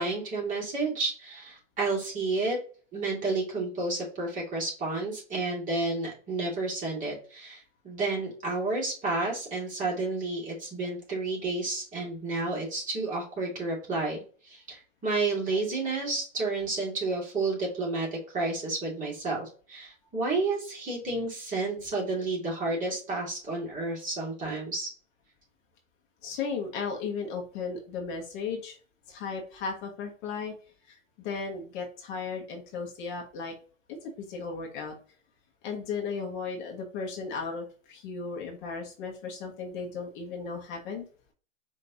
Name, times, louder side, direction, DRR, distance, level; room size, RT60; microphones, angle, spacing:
voice 1, 0.0-2.6 2.9-24.9, right 3 dB, 20° right, -3 dB, 2.2 m, -31 dB
voice 2, 26.2-28.8 29.1-30.5 30.9-33.5 33.9-34.9 35.6-41.0, left 5 dB, 40° left, 1 dB, 1.2 m, -35 dB
5.0 x 2.9 x 2.8 m, 0.40 s
hypercardioid pair, 130°, 38 cm